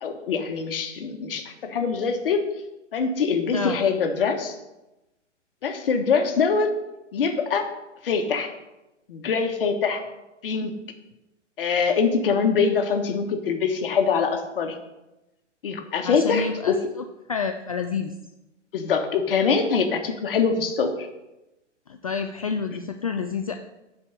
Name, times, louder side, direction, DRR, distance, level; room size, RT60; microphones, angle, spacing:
voice 1, 0.0-2.5 2.9-4.6 5.6-6.7 7.1-7.7 8.0-8.5 9.1-10.0 10.4-10.8 11.6-14.8 15.6-16.8 18.7-21.1, left 5 dB, 50° left, 5 dB, 1.3 m, -24 dB
voice 2, 16.0-16.7 17.3-18.1 21.9-23.5, left 5 dB, 30° left, 6 dB, 0.4 m, -28 dB
9.5 x 4.8 x 6.5 m, 0.98 s
figure-of-eight pair, 120°, 36 cm